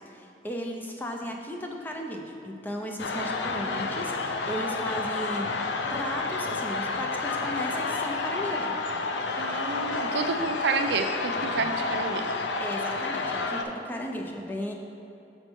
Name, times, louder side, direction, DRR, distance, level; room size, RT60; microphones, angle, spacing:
voice 1, 0.1-5.5 5.9-8.7 12.6-14.7, equal, 10° left, 2 dB, 0.5 m, -35 dB
sound 1, 3.0-13.6, left 3 dB, 75° left, 0.4 m, -30 dB
voice 2, 3.5-3.9 9.4-12.4, right 4 dB, 75° right, 6 dB, 0.4 m, -30 dB
6.5 x 4.4 x 4.4 m, 2.8 s
head